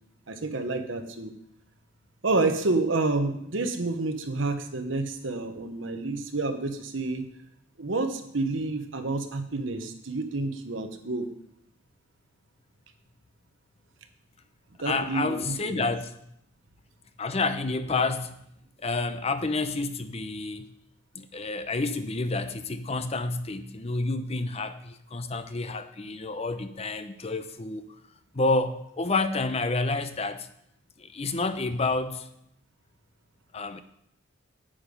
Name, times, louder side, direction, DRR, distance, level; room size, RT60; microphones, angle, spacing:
voice 1, 0.3-1.3 2.2-7.2 7.8-11.3 14.8-15.9, right 3 dB, 80° right, 7 dB, 1.1 m, -29 dB
voice 2, 14.8-16.2 17.2-18.3 18.8-20.7 21.1-27.8 28.3-30.5 31.0-32.3 33.5-33.8, left 3 dB, 30° left, 10 dB, 0.6 m, -29 dB
8.9 x 8.9 x 5.3 m, 0.74 s
head